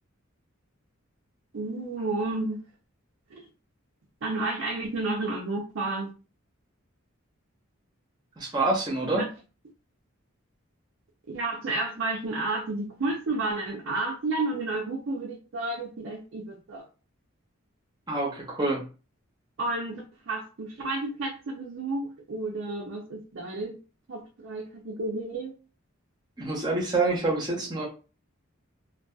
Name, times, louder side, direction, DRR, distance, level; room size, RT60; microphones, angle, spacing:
voice 1, 1.5-2.6 3.3-3.5 4.2-6.1 9.1-9.3 11.3-16.8 19.6-23.8 24.1-25.5, right 2 dB, 60° right, 0 dB, 0.5 m, -31 dB
voice 2, 8.4-9.3 18.1-18.8 26.4-27.9, right 2 dB, 20° right, -2 dB, 0.7 m, -27 dB
2.6 x 2.2 x 2.2 m, 0.34 s
head